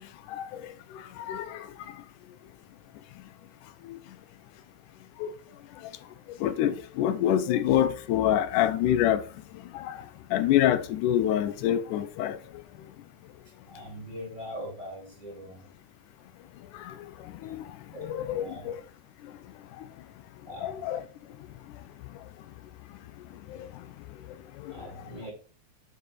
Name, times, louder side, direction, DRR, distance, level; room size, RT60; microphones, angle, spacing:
voice 1, 1.2-1.6 3.9-4.0 5.2-5.3 6.4-9.2 9.7-10.0 10.3-12.4 16.9-17.0 17.4-17.6 18.0-18.8 20.6-21.0 24.6-24.7, left 11 dB, 90° left, 2.2 m, -26 dB
voice 2, 13.6-15.6 17.9-18.1 18.3-18.7 20.5-20.7 24.7-25.3, equal, 15° right, 2.8 m, -41 dB
8.6 x 4.8 x 4.4 m
omnidirectional pair, 3.5 m